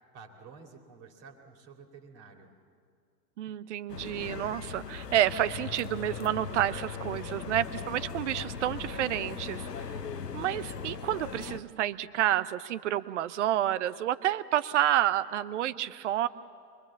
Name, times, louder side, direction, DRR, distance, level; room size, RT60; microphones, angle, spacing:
voice 1, 0.1-2.5, right 5 dB, 30° right, 3 dB, 2.6 m, -51 dB
voice 2, 3.4-9.8 10.3-16.3, right 12 dB, 50° right, 16 dB, 0.8 m, -29 dB
sound 1, 3.9-11.6, left 6 dB, 85° left, 1.0 m, -39 dB
24.5 x 21.5 x 7.2 m, 2.2 s
figure-of-eight pair, 110°, 47 cm